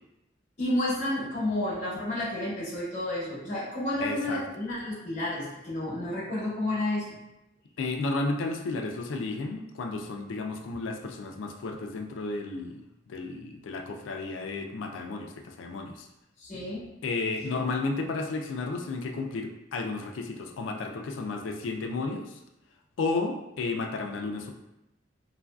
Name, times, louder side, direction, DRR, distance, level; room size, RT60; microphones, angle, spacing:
voice 1, 0.6-7.1 16.4-16.9, left 1 dB, 40° left, -8 dB, 0.8 m, -31 dB
voice 2, 4.0-4.4 7.8-12.8 13.1-16.1 17.0-22.3 23.0-24.5, left 3 dB, 85° left, 4 dB, 0.4 m, -32 dB
3.0 x 2.4 x 2.3 m, 0.91 s
head